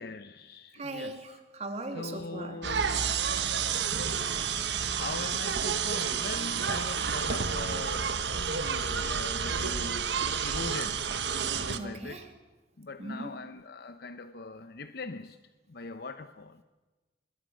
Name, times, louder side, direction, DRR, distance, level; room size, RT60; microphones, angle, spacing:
voice 1, 0.0-1.2 1.9-3.2 5.0-8.1 8.5-10.1 10.4-11.0 11.6-12.2 12.8-15.4 15.7-16.6, left 3 dB, 65° left, 10 dB, 0.8 m, -41 dB
voice 2, 0.7-2.6 3.7-4.3 11.8-12.3 13.0-13.4, right 2 dB, 40° right, 5 dB, 2.9 m, -40 dB
sound 1, 2.6-11.8, right 6 dB, 85° right, 1.4 m, -30 dB
25.5 x 22.0 x 6.4 m, 1.2 s
head